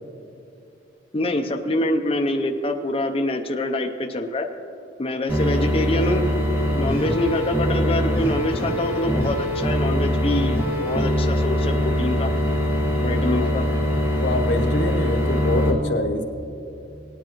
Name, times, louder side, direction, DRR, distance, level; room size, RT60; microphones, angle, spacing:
voice 1, 1.1-4.5 5.0-6.3 6.7-12.3 13.0-13.7, left 1 dB, 30° left, 3 dB, 0.5 m, -25 dB
sound 1, 5.3-15.7, equal, 15° right, 1.5 m, -22 dB
voice 2, 13.3-13.7 14.2-16.2, left 2 dB, 70° left, 4 dB, 0.9 m, -26 dB
18.0 x 10.0 x 3.0 m, 2.8 s
head